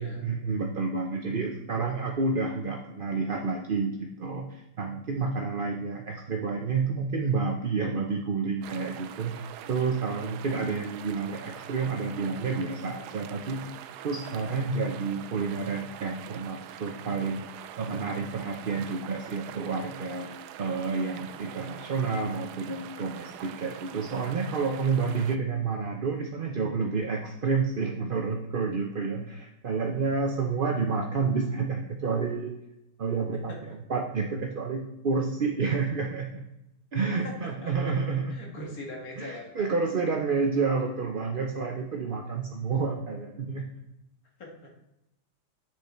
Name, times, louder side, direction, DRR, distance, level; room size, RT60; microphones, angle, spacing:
voice 1, 0.0-13.7 14.0-17.4 17.8-20.3 20.6-32.6 33.0-36.5 36.9-38.4 39.2-43.7, right 4 dB, 45° right, 1 dB, 0.7 m, -29 dB
sound 1, 8.6-25.4, right 10 dB, 75° right, 1.1 m, -44 dB
voice 2, 37.6-37.9 38.3-39.7 44.4-44.7, left 1 dB, 55° left, 0 dB, 2.3 m, -41 dB
8.6 x 6.8 x 4.3 m, 0.88 s
omnidirectional pair, 1.8 m